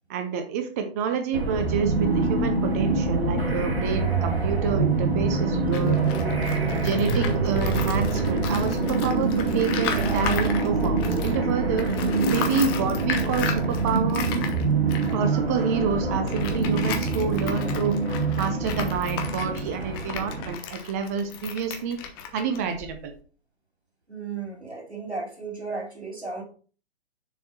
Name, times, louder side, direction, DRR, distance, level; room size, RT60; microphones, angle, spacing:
voice 1, 0.1-6.0 6.7-11.9 12.3-14.2 15.1-17.9 18.4-22.0 22.3-23.1, right 6 dB, 15° right, 6 dB, 0.5 m, -28 dB
sound 1, 1.3-20.5, right 3 dB, 70° right, 2.4 m, -25 dB
Tools, 5.6-11.4 11.7-23.2, left 7 dB, 20° left, 0.8 m, -36 dB
voice 2, 24.1-26.4, right 4 dB, 90° right, 1 dB, 2.6 m, -34 dB
6.8 x 4.3 x 4.3 m, 0.39 s
figure-of-eight pair, 125°, 32 cm